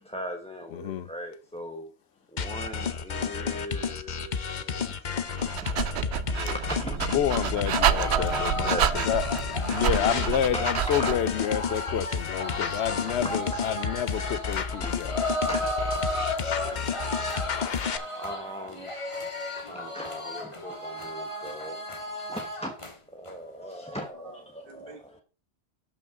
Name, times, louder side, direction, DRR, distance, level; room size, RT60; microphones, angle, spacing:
voice 1, 0.0-1.9 2.3-5.3 5.6-7.0 7.9-9.0 10.5-11.3 12.7-13.3 14.8-15.0 15.5-15.9 16.6-16.9 18.2-22.7 23.1-25.0, equal, 5° left, 1.0 m, -39 dB
voice 2, 0.7-1.1 7.1-15.1, left 10 dB, 85° left, 0.9 m, -29 dB
sound 1, 2.4-18.0, left 6 dB, 50° left, 0.8 m, -31 dB
Dog, 5.2-11.3, right 9 dB, 90° right, 0.9 m, -28 dB
sound 2, 7.7-22.9 23.3-23.4 23.7-24.1, left 1 dB, 30° left, 1.6 m, -34 dB
voice 3, 9.7-10.7 11.0-11.1 16.6-17.3 24.1-25.2, right 3 dB, 55° right, 1.6 m, -43 dB
12.5 x 5.9 x 3.7 m
omnidirectional pair, 1.1 m